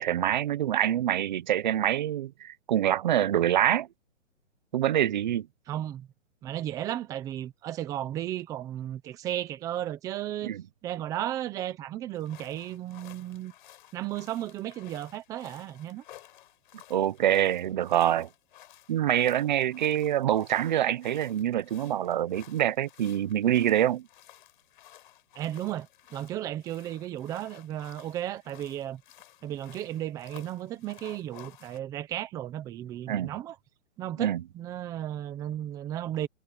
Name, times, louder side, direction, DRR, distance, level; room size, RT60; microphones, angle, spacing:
voice 1, 0.0-3.9 4.7-5.5 10.4-10.6 16.9-18.3 18.9-24.0 33.1-33.3 34.2-34.4, right 11 dB, 40° right, 0.9 m, -25 dB
voice 2, 5.7-6.1 6.4-10.5 10.8-13.5 13.9-16.0 25.3-29.0 29.4-33.5 34.0-36.3, right 12 dB, 10° right, 0.9 m, -34 dB
sound 1, 12.1-31.8, left 13 dB, 40° left, 6.0 m, -54 dB
hypercardioid pair, 170°, 36 cm